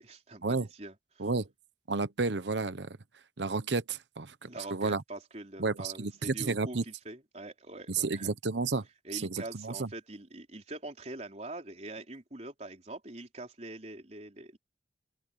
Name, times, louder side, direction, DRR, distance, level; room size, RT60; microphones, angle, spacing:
voice 1, 0.0-1.3 4.4-8.3 9.0-14.6, right 2 dB, 40° right, 4.2 m, -44 dB
voice 2, 1.9-3.0 3.4-5.0 5.6-6.8 8.0-8.9 9.1-9.9, right 3 dB, 90° right, 1.0 m, -31 dB
open air
head